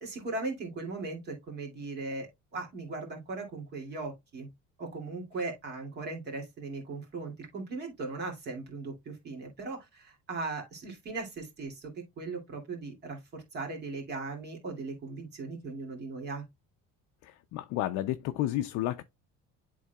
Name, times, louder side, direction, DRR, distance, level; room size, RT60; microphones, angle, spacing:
voice 1, 0.0-4.5 4.8-16.5, right 3 dB, 30° right, 2.4 m, -38 dB
voice 2, 17.2-19.0, left 14 dB, 55° left, 0.5 m, -31 dB
11.0 x 3.7 x 2.3 m
cardioid pair, 170°, 31 cm